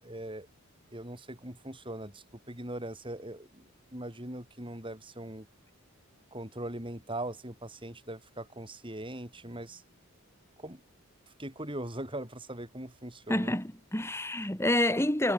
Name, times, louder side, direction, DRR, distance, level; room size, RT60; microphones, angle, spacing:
voice 1, 0.0-0.5 0.9-3.6 3.9-5.5 6.3-9.8 10.6-10.8 11.4-13.5, right 1 dB, 25° right, 7.0 m, -40 dB
voice 2, 13.3-15.3, left 1 dB, 10° left, 2.2 m, -28 dB
head